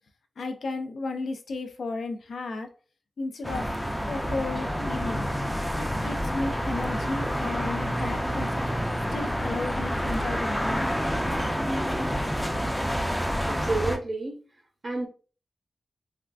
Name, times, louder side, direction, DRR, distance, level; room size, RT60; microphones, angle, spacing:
voice 1, 0.4-2.7 3.2-5.3 5.8-8.5 9.1-11.2, left 3 dB, 85° left, 0.5 m, -34 dB
sound 1, 3.4-14.0, equal, 5° left, 0.4 m, -28 dB
voice 2, 13.5-14.4 14.8-15.1, right 3 dB, 45° right, 0.6 m, -30 dB
3.4 x 2.4 x 2.4 m
wide cardioid pair, 150°, 0 cm